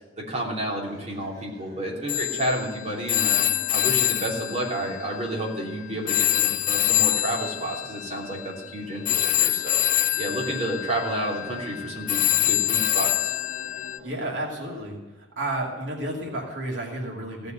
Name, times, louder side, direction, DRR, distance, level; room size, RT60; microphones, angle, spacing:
voice 1, 0.3-3.4 3.7-9.8 10.2-13.3, right 1 dB, 40° right, -4 dB, 3.2 m, -30 dB
sound 1, 0.8-14.8, equal, 25° right, 5.0 m, -47 dB
Telephone, 2.1-5.7 6.1-14.0, left 13 dB, 45° left, 0.5 m, -25 dB
voice 2, 14.0-17.5, right 1 dB, 90° right, -1 dB, 2.6 m, -32 dB
16.0 x 6.7 x 7.8 m, 1.2 s
head